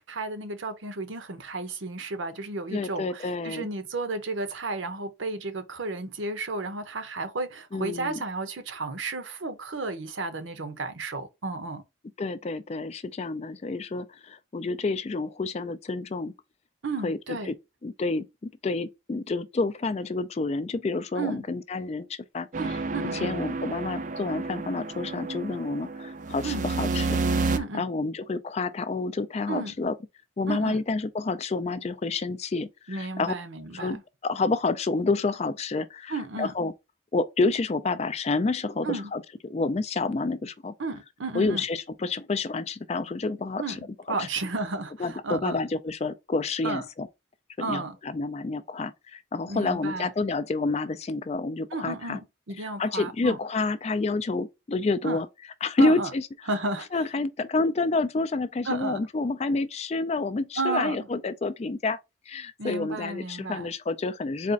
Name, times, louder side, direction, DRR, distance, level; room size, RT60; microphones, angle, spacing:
voice 1, 0.0-11.8 16.8-17.5 21.2-21.4 22.6-23.3 26.4-26.7 27.5-27.8 29.5-29.7 30.5-30.8 32.9-34.0 36.1-36.5 38.8-39.1 40.8-41.6 43.6-45.6 46.6-46.8 47.6-48.0 49.5-50.1 51.7-52.2 52.5-53.4 55.0-55.2 55.8-56.1 56.5-56.9 58.7-59.0 60.6-61.0 62.6-63.7, right 3 dB, 75° right, 0.8 m, -33 dB
voice 2, 2.7-3.7 7.7-8.2 12.2-16.3 17.0-17.5 17.8-18.3 18.6-22.5 23.1-29.9 30.4-33.3 33.7-36.7 37.1-40.7 41.3-43.8 44.2-44.3 45.0-47.1 47.6-52.2 52.6-55.3 55.6-56.2 56.9-62.0 62.3-64.5, left 3 dB, 30° left, 0.3 m, -29 dB
sound 1, 22.5-27.6, right 3 dB, 40° right, 0.4 m, -30 dB
4.2 x 2.4 x 3.7 m
head